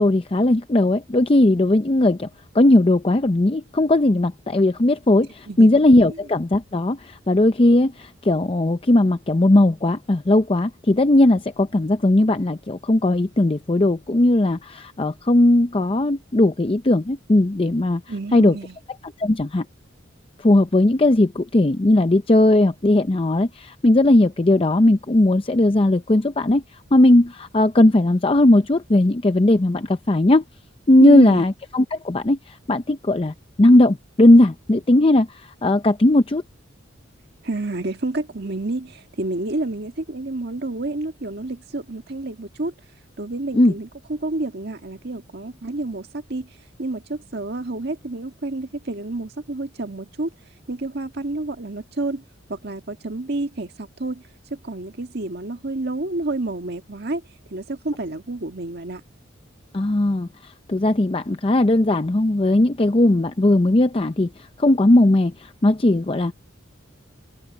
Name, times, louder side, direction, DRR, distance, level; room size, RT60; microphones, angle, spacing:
voice 1, 0.0-2.3 2.5-7.0 7.3-18.0 18.3-18.5 19.2-19.6 20.4-26.6 26.9-30.4 30.9-32.4 32.7-35.3 35.6-36.4 43.5-43.7 59.7-60.3 60.7-64.3 64.6-65.3 65.6-66.3, left 1 dB, 30° left, 0.6 m, -17 dB
voice 2, 18.1-18.8 31.0-31.4 37.4-42.7 43.2-50.3 50.7-52.2 52.5-54.2 54.5-57.2 57.5-59.0, right 2 dB, 55° right, 1.7 m, -29 dB
head